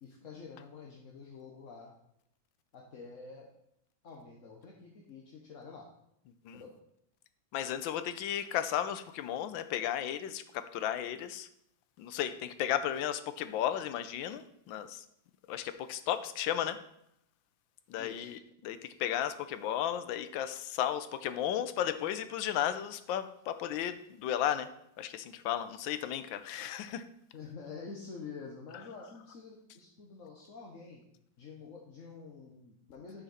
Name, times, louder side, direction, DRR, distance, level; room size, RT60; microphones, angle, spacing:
voice 1, 0.0-1.9 2.7-3.5 4.0-5.9 6.5-6.7 18.0-18.3 27.3-31.0 31.4-33.2, left 5 dB, 45° left, -2 dB, 1.2 m, -48 dB
voice 2, 7.5-11.5 12.0-15.0 15.5-16.8 17.9-24.7 25.0-27.0, left 10 dB, 75° left, 11 dB, 1.3 m, -34 dB
9.9 x 5.6 x 4.2 m, 0.75 s
omnidirectional pair, 2.2 m